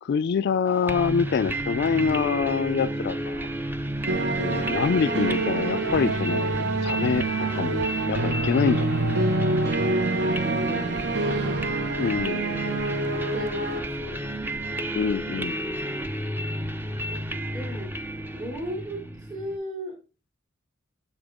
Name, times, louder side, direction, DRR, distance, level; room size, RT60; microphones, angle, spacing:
voice 1, 0.0-3.5 4.4-9.0 12.0-12.4 15.0-15.6, left 6 dB, 55° left, 0.3 m, -26 dB
sound 1, 0.9-19.6, right 1 dB, 10° right, 0.5 m, -31 dB
sound 2, 4.1-13.8, right 3 dB, 60° right, 0.8 m, -27 dB
voice 2, 10.6-12.4 13.1-14.9 17.1-17.2 17.5-17.9 18.3-20.0, right 1 dB, 40° right, 3.0 m, -37 dB
7.2 x 5.2 x 3.6 m
head